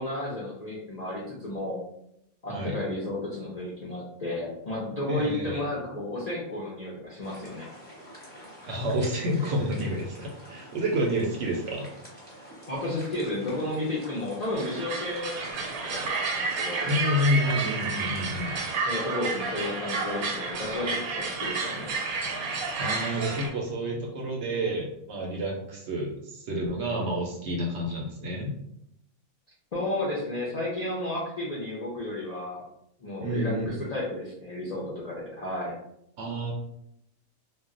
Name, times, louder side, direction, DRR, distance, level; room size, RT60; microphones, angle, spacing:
voice 1, 0.0-1.8 2.4-7.7 12.7-16.9 18.9-22.0 29.7-32.6 33.0-35.7, left 1 dB, 55° left, -5 dB, 0.4 m, -32 dB
voice 2, 5.1-5.6 8.7-11.9 16.8-18.6 22.8-28.5 33.2-33.9 36.2-36.5, equal, 65° right, -1 dB, 0.7 m, -29 dB
sound 1, 7.2-18.5, equal, 10° left, 0.8 m, -47 dB
sound 2, 14.5-23.5, right 4 dB, 80° right, 1.1 m, -31 dB
2.3 x 2.1 x 3.6 m, 0.77 s
omnidirectional pair, 1.5 m